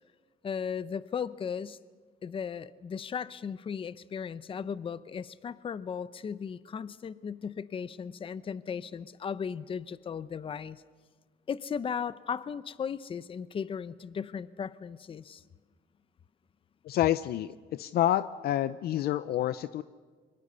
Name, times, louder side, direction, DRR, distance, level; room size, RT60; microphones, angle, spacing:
voice 1, 0.4-1.8 2.2-10.8 11.5-15.4, left 7 dB, 30° left, 17 dB, 0.7 m, -36 dB
voice 2, 16.8-19.8, left 12 dB, 65° left, 15 dB, 0.6 m, -28 dB
24.0 x 23.5 x 6.8 m, 1.5 s
cardioid pair, 110°, 17 cm